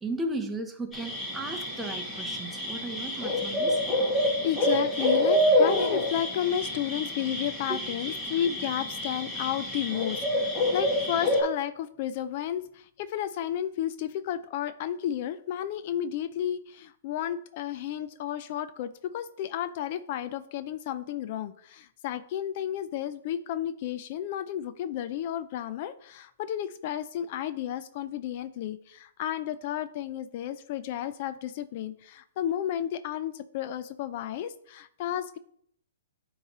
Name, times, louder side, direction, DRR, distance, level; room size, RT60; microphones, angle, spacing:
voice 1, 0.0-3.8 7.7-7.8, right 2 dB, 10° right, 4 dB, 0.8 m, -35 dB
sound 1, 0.9-11.4, left 1 dB, 15° left, 1.5 m, -27 dB
voice 2, 4.4-35.4, left 10 dB, 45° left, 12 dB, 0.3 m, -32 dB
9.0 x 3.1 x 4.0 m, 0.66 s
hypercardioid pair, 135°, 0 cm